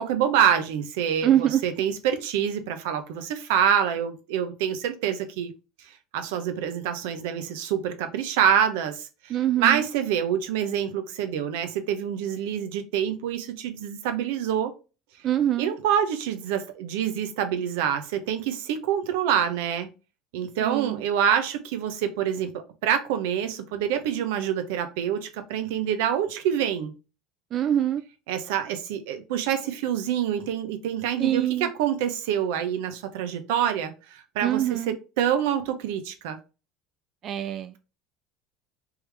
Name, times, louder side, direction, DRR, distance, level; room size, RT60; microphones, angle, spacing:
voice 1, 0.0-5.5 5.8-9.3 9.6-14.7 15.6-19.9 20.3-22.5 22.8-26.9 28.3-36.4, right 9 dB, 75° right, 0.7 m, -26 dB
voice 2, 1.2-1.6 9.3-9.9 15.2-15.7 20.6-21.0 27.5-28.0 31.2-31.7 34.4-35.0 37.2-37.8, right 11 dB, 50° right, 0.3 m, -24 dB
3.6 x 3.0 x 3.3 m
hypercardioid pair, 85°, 0 cm